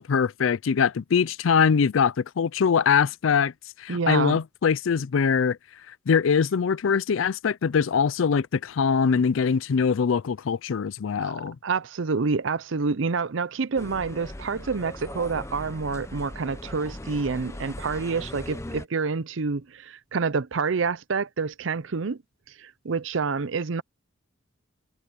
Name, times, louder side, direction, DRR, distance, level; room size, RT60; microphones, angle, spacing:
voice 1, 0.0-3.5 3.8-5.6 6.1-11.6, left 6 dB, 85° left, 0.4 m, -23 dB
voice 2, 3.9-4.4 11.2-11.4 11.6-22.2 22.6-23.8, right 4 dB, 75° right, 0.6 m, -28 dB
sound 1, 13.7-18.8, left 1 dB, 15° left, 0.7 m, -39 dB
head